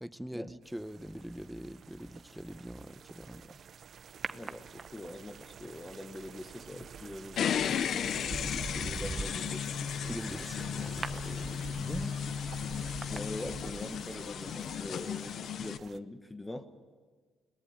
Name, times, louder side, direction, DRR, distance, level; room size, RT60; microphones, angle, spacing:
voice 1, 0.0-3.6 10.1-12.2, equal, ahead, 0.8 m, -43 dB
sound 1, 0.6-16.0, right 7 dB, 55° right, 0.6 m, -50 dB
Rock Unedited, 4.2-5.3 7.1-7.4 7.9-14.1 14.4-14.5, right 3 dB, 30° right, 1.0 m, -43 dB
voice 2, 4.3-9.8 13.1-16.7, left 1 dB, 15° left, 1.2 m, -43 dB
sound 2, 7.4-15.8, left 8 dB, 65° left, 0.6 m, -35 dB
22.0 x 19.0 x 8.8 m
cardioid pair, 90°, 0 cm